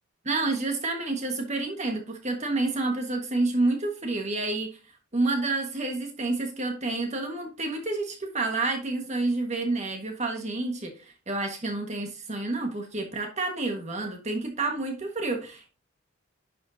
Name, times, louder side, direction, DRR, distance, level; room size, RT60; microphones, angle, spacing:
voice 1, 0.2-4.8 5.1-15.7, right 2 dB, 35° right, 3 dB, 1.5 m, -29 dB
10.5 x 5.3 x 2.7 m, 0.33 s
head